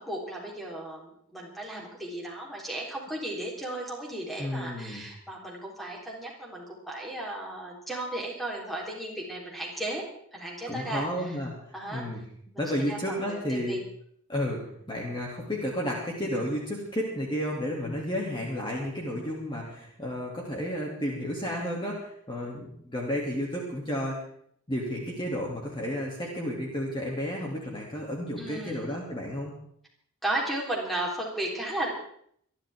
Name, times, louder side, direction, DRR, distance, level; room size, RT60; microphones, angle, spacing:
voice 1, 0.0-10.0 10.3-11.4 11.7-12.0 12.5-13.8 28.4-28.8 30.2-31.9, right 1 dB, ahead, -2 dB, 3.9 m, -35 dB
voice 2, 4.4-5.0 10.7-12.2 12.6-13.8 14.3-24.2 24.7-29.5, equal, 20° left, -3 dB, 2.7 m, -32 dB
26.5 x 11.5 x 3.7 m, 0.65 s
head